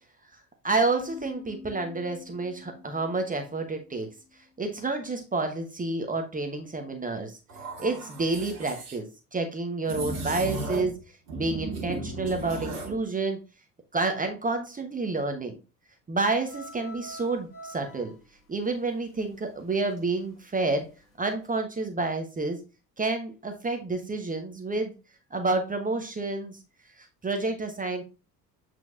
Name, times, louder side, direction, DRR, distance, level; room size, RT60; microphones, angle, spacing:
voice 1, 0.6-4.1 4.6-7.4 7.8-9.1 9.3-13.4 13.9-15.6 16.1-18.1 18.5-20.9 21.2-22.6 23.0-24.9 25.3-26.6 27.0-28.0, right 3 dB, 15° right, 5 dB, 1.0 m, -29 dB
sound 1, 1.0-4.6, left 6 dB, 45° left, 1.1 m, -47 dB
sound 2, 7.5-9.0 9.8-11.0 11.3-13.0, right 3 dB, 65° right, 1.5 m, -35 dB
sound 3, 16.4-20.2 20.5-21.0 21.4-21.5, right 1 dB, 75° left, 1.5 m, -46 dB
8.0 x 4.6 x 2.6 m, 0.31 s
figure-of-eight pair, 60°, 47 cm